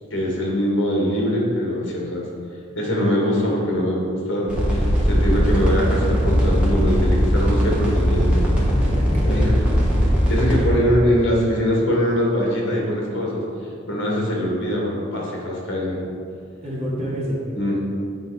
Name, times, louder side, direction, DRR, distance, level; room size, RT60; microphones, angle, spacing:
voice 1, 0.1-2.2 2.7-8.4 9.3-9.4 10.3-13.4 13.9-16.0 17.5-17.8, equal, 65° left, -3 dB, 1.7 m, -22 dB
sound 1, 4.5-10.6, equal, 5° right, 1.2 m, -19 dB
voice 2, 8.8-9.5 9.9-10.0 10.5-10.7 16.6-17.4, equal, 30° right, -6 dB, 1.9 m, -29 dB
7.8 x 5.0 x 4.7 m, 2.4 s
head